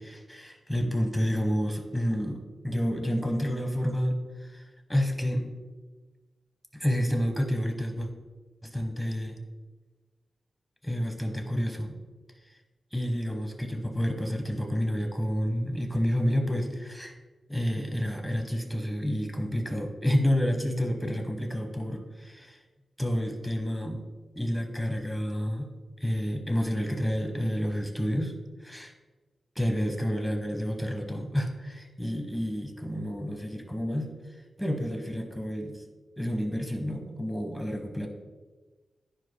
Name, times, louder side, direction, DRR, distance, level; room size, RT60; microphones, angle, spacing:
voice 1, 0.0-5.5 6.7-8.1 8.6-9.4 10.8-11.9 12.9-17.1 17.5-22.6 23.0-24.0 24.3-25.7 26.0-28.3 28.6-28.9 29.5-34.1 34.6-35.8 36.2-38.1, equal, 5° left, 3 dB, 1.2 m, -29 dB
10.5 x 4.9 x 2.2 m, 1.3 s
cardioid pair, 45°, 0 cm